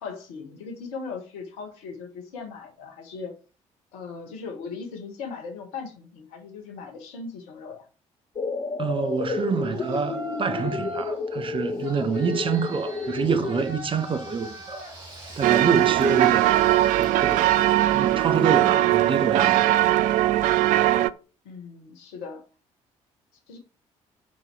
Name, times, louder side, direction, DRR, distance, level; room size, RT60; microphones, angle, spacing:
voice 1, 0.0-3.3 3.9-7.9 21.4-22.4 23.5-23.6, left 5 dB, 65° left, 1.4 m, -38 dB
sound 1, 8.4-13.7, left 4 dB, 30° left, 0.8 m, -31 dB
voice 2, 8.8-14.8 15.4-16.6 17.0-17.5 17.9-20.0, right 5 dB, 30° right, 0.8 m, -27 dB
Yell, 9.7-11.3 11.8-18.5, right 1 dB, 75° right, 2.1 m, -40 dB
sound 2, 15.4-21.1, right 14 dB, 50° right, 0.4 m, -20 dB
6.3 x 4.4 x 4.3 m
figure-of-eight pair, 45°, 16 cm